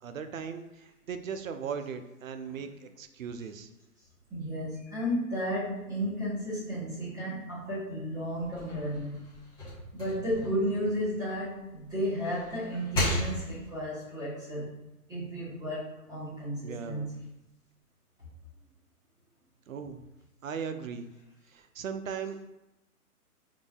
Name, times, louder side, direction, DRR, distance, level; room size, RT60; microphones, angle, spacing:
voice 1, 0.0-3.7 16.6-17.1 19.7-20.0 20.4-21.1 21.5-22.4, right 6 dB, 60° right, 8 dB, 0.6 m, -38 dB
voice 2, 4.3-9.2 9.9-14.7 15.1-17.1, equal, 10° right, -10 dB, 1.1 m, -33 dB
sound 1, 8.4-11.6 12.0-13.8, left 1 dB, 10° left, 0.9 m, -35 dB
4.8 x 3.7 x 2.3 m, 0.94 s
figure-of-eight pair, 130°, 46 cm